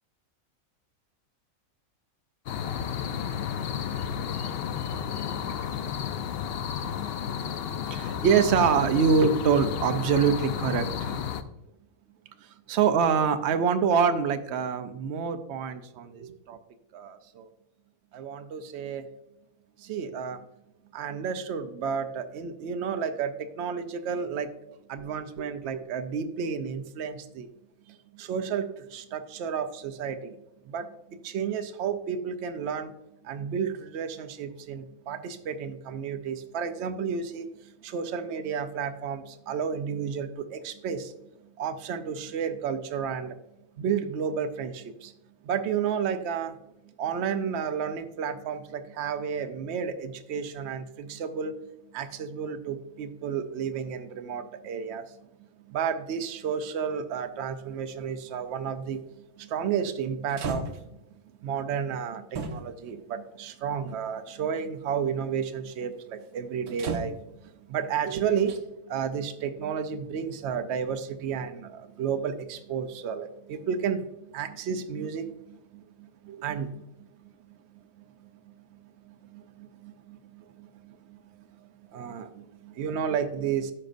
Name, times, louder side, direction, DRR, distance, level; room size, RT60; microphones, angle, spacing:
sound 1, 2.5-11.4, left 8 dB, 75° left, 0.5 m, -32 dB
voice 1, 7.8-11.2 12.4-16.6 16.9-17.5 18.1-19.1 19.8-20.4 20.9-24.5 24.9-27.5 27.9-30.4 30.6-32.9 33.2-41.1 41.6-43.4 43.8-45.1 45.4-46.6 47.0-51.5 51.9-55.1 55.7-59.0 59.4-60.7 61.4-67.1 67.4-76.8 78.2-78.3 79.0-81.2 81.9-83.7, right 6 dB, 60° right, 9 dB, 0.8 m, -30 dB
sound 2, 58.9-59.1 59.9-60.0 60.3-61.1 62.3-62.9 63.9-64.0 66.7-67.5 68.4-68.6, right 4 dB, 85° right, 1.3 m, -35 dB
13.0 x 5.1 x 2.5 m, 0.90 s
omnidirectional pair, 1.5 m